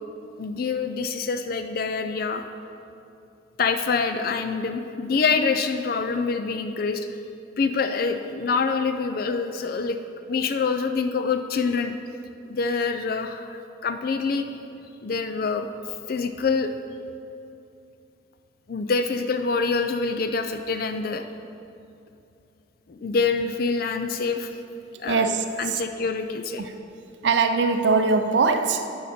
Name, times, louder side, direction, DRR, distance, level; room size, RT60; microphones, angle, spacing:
voice 1, 0.4-2.4 3.6-7.1 7.6-10.0 10.3-12.0 12.5-14.5 15.0-15.7 16.1-16.7 18.7-21.2 22.9-24.5 25.0-26.6, left 4 dB, 50° left, 0.4 m, -26 dB
voice 2, 25.0-25.8 26.6-26.7 27.2-28.9, right 4 dB, 65° right, 0.5 m, -22 dB
11.5 x 6.6 x 4.3 m
head